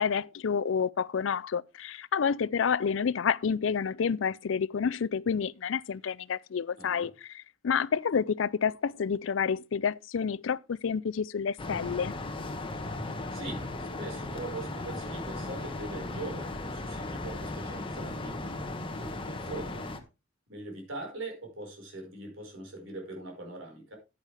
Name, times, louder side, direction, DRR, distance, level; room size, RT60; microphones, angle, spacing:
voice 1, 0.0-12.1, left 6 dB, 70° left, 0.4 m, -29 dB
voice 2, 6.8-7.1 13.3-18.4 19.0-19.9 20.5-24.0, right 2 dB, 70° right, 5.1 m, -41 dB
sound 1, 11.6-20.0, left 2 dB, 25° left, 1.3 m, -37 dB
10.0 x 9.8 x 3.4 m
head